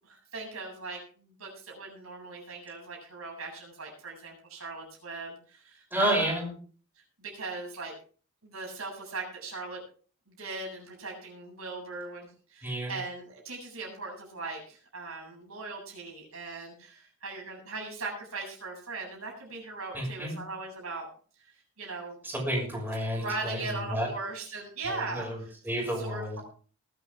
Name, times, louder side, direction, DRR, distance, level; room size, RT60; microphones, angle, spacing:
voice 1, 0.0-6.4 7.2-7.9 8.4-9.8 10.3-21.1 21.4-22.2 23.1-25.5 26.0-26.4, right 3 dB, 85° right, -1 dB, 7.8 m, -39 dB
voice 2, 5.9-6.5 12.6-12.9 19.9-20.4 22.2-24.1 24.9-26.4, equal, 10° right, -2 dB, 6.2 m, -31 dB
21.5 x 9.8 x 3.7 m, 0.41 s
head